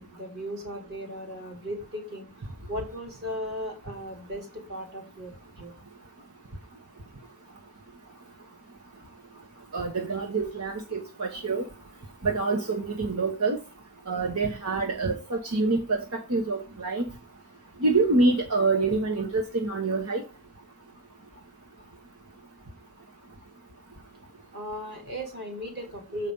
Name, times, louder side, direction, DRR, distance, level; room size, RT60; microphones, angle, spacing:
voice 1, 0.0-2.3 2.7-5.7 24.5-26.3, equal, 50° right, 3.5 m, -36 dB
voice 2, 9.7-11.6 12.2-13.6 14.1-16.0 16.3-17.0 17.8-20.2, right 3 dB, 80° right, 1.3 m, -26 dB
7.5 x 5.1 x 5.5 m
head